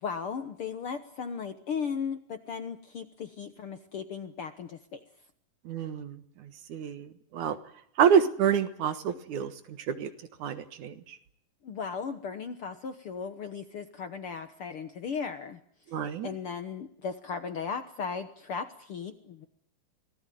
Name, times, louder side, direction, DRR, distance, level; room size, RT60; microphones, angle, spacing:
voice 1, 0.0-5.0 11.6-15.6 16.2-19.5, left 6 dB, 60° left, 9 dB, 1.6 m, -36 dB
voice 2, 5.7-6.2 6.7-7.6 8.0-9.5 9.9-10.1 10.4-11.2 15.9-16.3, right 8 dB, 65° right, 11 dB, 2.7 m, -27 dB
26.0 x 19.0 x 9.3 m, 0.66 s
omnidirectional pair, 3.8 m